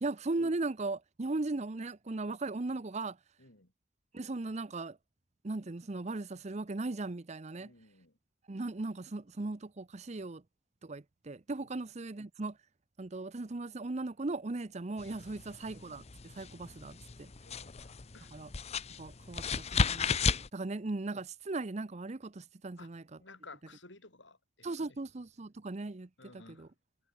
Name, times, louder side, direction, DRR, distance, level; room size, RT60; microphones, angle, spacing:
voice 1, 0.0-3.2 4.1-5.0 5.4-7.7 8.5-10.4 10.8-12.6 13.0-17.3 18.3-18.5 19.0-19.5 19.7-20.2 20.5-23.2 24.6-26.7, right 2 dB, 35° right, 0.7 m, -38 dB
voice 2, 3.4-3.7 7.6-8.1 15.3-15.4 17.4-18.3 22.8-22.9 23.2-24.9 26.2-26.7, left 3 dB, 80° left, 7.4 m, -55 dB
sound 1, 15.0-20.5, left 5 dB, 35° left, 0.8 m, -34 dB
head